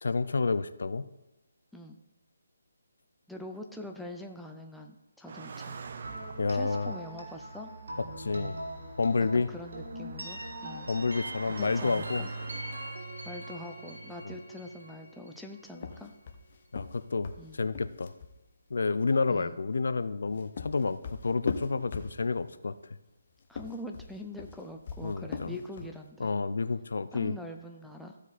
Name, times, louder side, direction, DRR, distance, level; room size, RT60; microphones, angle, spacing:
voice 1, 0.0-1.1 6.4-6.9 8.2-8.6 9.0-9.5 10.9-12.2 14.2-14.4 16.7-18.1 18.7-22.7 25.0-25.5 26.2-27.4, left 4 dB, 70° left, 13 dB, 0.5 m, -29 dB
voice 2, 3.3-5.8 6.5-7.7 9.3-10.9 11.5-12.3 13.2-16.1 17.4-17.6 19.3-19.6 23.5-26.3 27.1-28.2, left 1 dB, ahead, 1 dB, 0.5 m, -43 dB
Car passing by, 5.3-13.0, right 5 dB, 45° right, 0.7 m, -47 dB
sound 1, 6.0-15.8, right 1 dB, 75° right, 2.5 m, -41 dB
sound 2, 15.7-18.4 20.1-22.5 23.4-26.0, left 5 dB, 40° left, 0.8 m, -40 dB
14.5 x 4.9 x 4.1 m, 0.99 s
hypercardioid pair, 165°, 0 cm